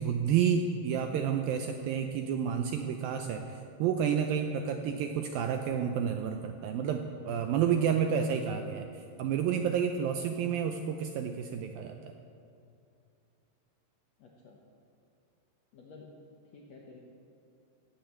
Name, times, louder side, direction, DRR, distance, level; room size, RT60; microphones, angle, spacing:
voice 1, 0.0-12.0, right 7 dB, 85° right, 5 dB, 2.1 m, -30 dB
voice 2, 4.7-5.0 14.2-14.6 15.7-16.2 16.5-17.0, left 3 dB, 75° left, -1 dB, 1.6 m, -51 dB
17.0 x 8.9 x 7.7 m, 2.6 s
omnidirectional pair, 4.8 m